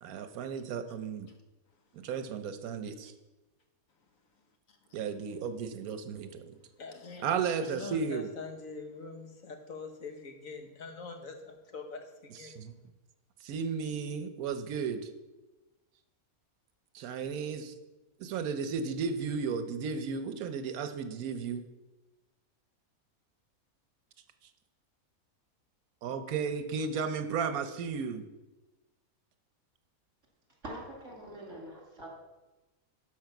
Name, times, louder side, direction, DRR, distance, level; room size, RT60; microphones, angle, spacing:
voice 1, 0.0-1.3 1.9-3.1 4.9-6.6 7.2-8.3 12.6-12.7 13.4-15.1 16.9-17.7 18.2-21.6 26.0-28.2, right 6 dB, 85° right, 9 dB, 1.2 m, -34 dB
voice 2, 6.8-7.3 7.6-12.5, left 4 dB, 70° left, 4 dB, 1.5 m, -44 dB
voice 3, 30.6-32.1, right 1 dB, 60° right, -2 dB, 2.7 m, -44 dB
12.0 x 4.9 x 5.9 m, 1.1 s
omnidirectional pair, 1.5 m